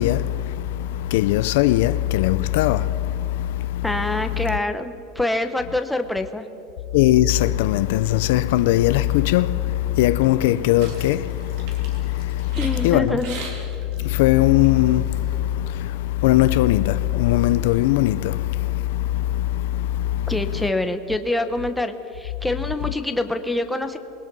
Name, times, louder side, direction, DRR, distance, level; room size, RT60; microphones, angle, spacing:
voice 1, 0.0-3.9 4.3-4.4 6.9-13.2 14.0-20.3, left 14 dB, 65° left, 0.6 m, -20 dB
voice 2, 3.8-6.4 12.6-13.3 20.3-24.0, left 2 dB, 5° left, 0.9 m, -25 dB
sound 1, 10.4-15.4, right 3 dB, 55° right, 3.8 m, -41 dB
27.0 x 20.5 x 5.4 m
supercardioid pair, 170°, 0 cm